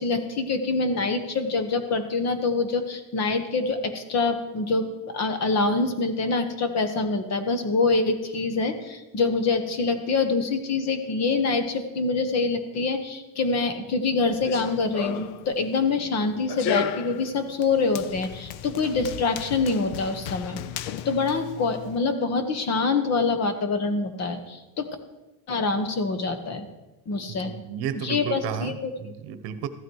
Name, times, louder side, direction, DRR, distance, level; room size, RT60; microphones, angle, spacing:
voice 1, 0.0-20.6 21.0-24.9 25.5-26.7 27.1-27.5 28.0-28.9, left 3 dB, 35° left, 9 dB, 1.4 m, -25 dB
Run, 14.3-22.0, left 10 dB, 70° left, 0.7 m, -35 dB
voice 2, 27.4-29.7, right 8 dB, 55° right, 11 dB, 1.2 m, -33 dB
14.5 x 12.5 x 4.7 m, 1.0 s
cardioid pair, 165°, 45 cm